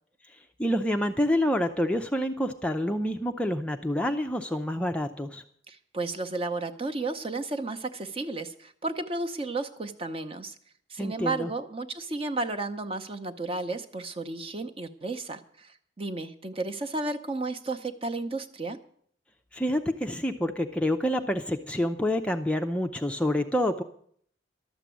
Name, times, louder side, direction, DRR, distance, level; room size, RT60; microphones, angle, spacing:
voice 1, 0.6-5.4 11.0-11.5 19.5-23.8, left 1 dB, 5° left, 5 dB, 0.5 m, -27 dB
voice 2, 5.7-10.5 10.9-18.8, right 3 dB, 30° right, 7 dB, 0.8 m, -33 dB
12.5 x 7.3 x 9.2 m, 0.63 s
head